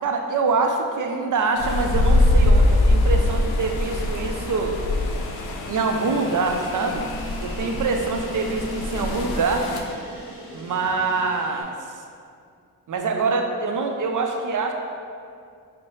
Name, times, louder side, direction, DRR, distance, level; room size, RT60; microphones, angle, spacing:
voice 1, 0.0-4.8 5.7-7.1 7.4-9.7 10.5-11.7 12.9-14.7, right 4 dB, 50° right, 4 dB, 0.5 m, -25 dB
sound 1, 1.5-11.6, equal, 35° left, 1.2 m, -40 dB
sound 2, 1.6-9.8, left 1 dB, 70° left, 0.5 m, -23 dB
4.5 x 2.1 x 3.1 m, 2.3 s
cardioid pair, 45°, 39 cm